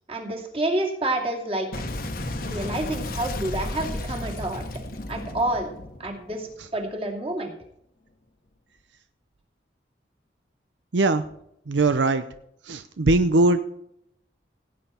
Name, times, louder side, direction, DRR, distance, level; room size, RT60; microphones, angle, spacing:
voice 1, 0.1-1.7 2.4-4.6 5.1-5.7 6.0-7.5, right 1 dB, 30° right, 1 dB, 2.6 m, -28 dB
Boom, 1.7-6.9, left 1 dB, 50° left, 1.3 m, -33 dB
voice 2, 10.9-11.2 11.7-12.2 12.6-13.6, right 2 dB, 80° right, 10 dB, 0.7 m, -20 dB
17.0 x 9.2 x 4.3 m, 0.74 s
head